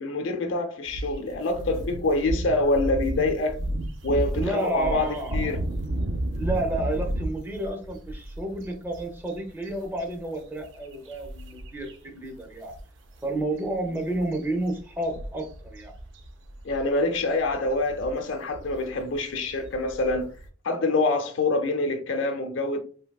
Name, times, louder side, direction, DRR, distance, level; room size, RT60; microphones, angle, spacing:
voice 1, 0.0-3.6 4.0-5.6 16.6-20.3 20.6-22.8, left 2 dB, 80° left, 0.6 m, -26 dB
sound 1, 0.9-12.0 12.2-12.4 12.7-20.5, right 1 dB, 75° right, 0.5 m, -33 dB
voice 2, 4.3-5.5 6.3-12.8 13.2-15.9, right 1 dB, 10° right, 0.5 m, -31 dB
3.5 x 2.6 x 2.3 m
head